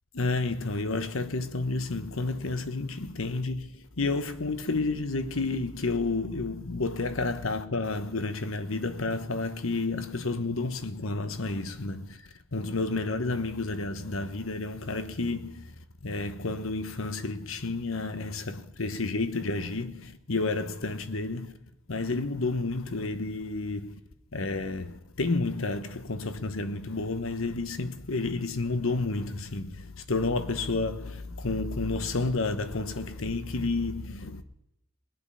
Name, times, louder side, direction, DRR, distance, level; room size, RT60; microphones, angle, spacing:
voice 1, 0.1-12.2 12.5-15.7 16.0-21.5 21.9-24.0 24.3-34.4, left 3 dB, 75° left, 1.1 m, -30 dB
21.5 x 7.9 x 5.7 m
head